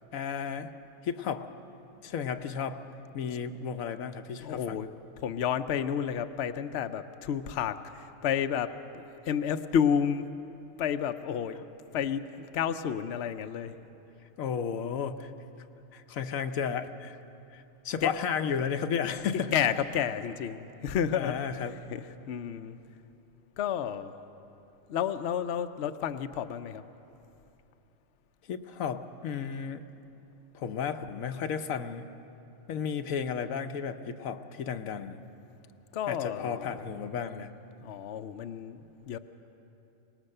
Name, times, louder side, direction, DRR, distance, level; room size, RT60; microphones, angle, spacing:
voice 1, 0.1-0.7 1.0-1.5 2.0-2.8 3.1-4.8 14.4-15.3 15.9-17.2 17.5-19.5 21.1-21.7 28.5-29.8 30.5-32.1 32.7-35.2 36.1-37.5, left 7 dB, 85° left, 8 dB, 1.2 m, -33 dB
voice 2, 4.4-4.9 5.2-10.3 10.8-11.6 11.9-13.7 18.0-18.1 19.5-21.4 21.9-22.8 23.6-24.1 24.9-26.8 35.9-36.8 37.8-39.2, left 8 dB, 60° left, 9 dB, 0.9 m, -31 dB
24.0 x 19.5 x 6.6 m, 2.9 s
omnidirectional pair, 1.4 m